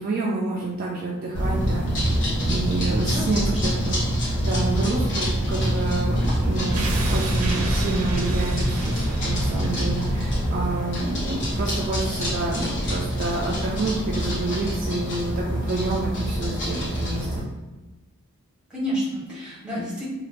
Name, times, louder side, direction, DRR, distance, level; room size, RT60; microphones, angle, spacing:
voice 1, 0.0-1.8 2.5-17.3, right 2 dB, 40° right, -3 dB, 0.4 m, -28 dB
sound 1, 1.3-17.4, equal, 55° left, 1.3 m, -25 dB
voice 2, 3.0-3.8 18.7-20.1, equal, 5° right, -8 dB, 1.2 m, -30 dB
sound 2, 6.7-11.7 12.0-12.1, right 1 dB, 85° right, 0.6 m, -29 dB
2.9 x 2.3 x 3.3 m, 1.1 s
head